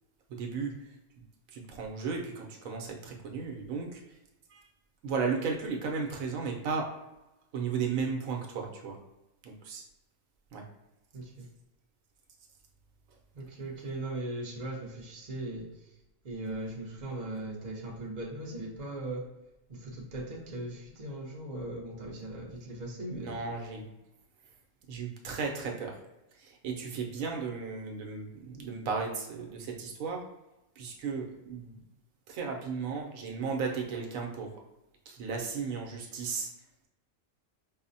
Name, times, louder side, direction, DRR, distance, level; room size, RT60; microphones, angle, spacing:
voice 1, 0.3-0.7 1.5-4.0 4.5-4.6 5.0-6.9 7.5-9.0 9.4-9.8 10.5-10.6 23.1-23.9 24.9-26.0 26.4-30.3 30.8-31.8 32.3-34.5 35.1-36.5, right 5 dB, 85° right, 1 dB, 1.1 m, -35 dB
voice 2, 13.4-15.6 16.2-19.2 19.7-23.4, right 2 dB, 40° right, -2 dB, 0.8 m, -38 dB
4.8 x 2.0 x 2.6 m, 0.96 s
omnidirectional pair, 1.4 m